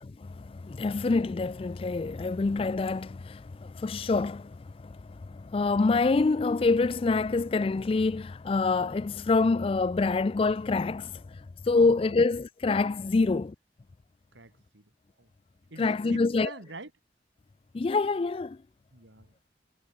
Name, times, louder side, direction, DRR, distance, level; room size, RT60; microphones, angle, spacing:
voice 1, 0.0-11.2 11.6-13.5 15.8-16.5 17.7-18.6, left 3 dB, 30° left, 0.3 m, -26 dB
voice 2, 11.8-12.2 13.2-13.3 14.3-14.9 15.2-15.3 15.7-16.9 18.9-19.3, right 2 dB, 80° right, 3.1 m, -45 dB
head